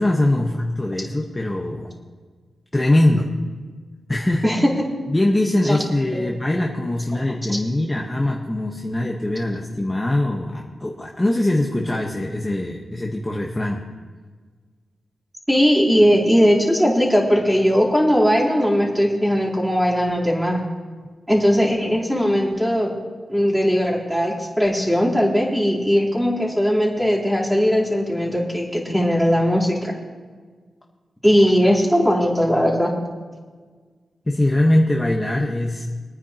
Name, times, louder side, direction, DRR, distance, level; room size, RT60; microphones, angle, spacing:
voice 1, 0.0-1.9 2.7-3.3 4.1-4.4 5.1-13.8 34.3-35.8, left 1 dB, 15° left, -1 dB, 1.2 m, -22 dB
voice 2, 15.5-20.6 21.3-22.9 23.3-29.9 31.2-32.9, equal, 5° right, -6 dB, 3.7 m, -19 dB
24.5 x 9.6 x 3.0 m, 1.5 s
wide cardioid pair, 100°, 0 cm